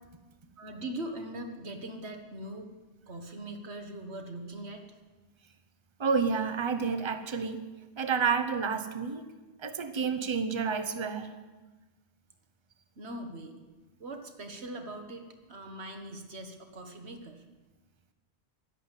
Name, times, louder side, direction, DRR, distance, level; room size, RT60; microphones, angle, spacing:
voice 1, 0.6-2.7 3.1-5.0 13.0-13.6 14.0-17.4, right 1 dB, 75° right, 5 dB, 1.8 m, -41 dB
voice 2, 6.0-7.6 8.0-9.2 9.6-11.3, right 5 dB, 30° right, 9 dB, 0.9 m, -29 dB
11.5 x 11.0 x 8.2 m, 1.2 s
omnidirectional pair, 1.1 m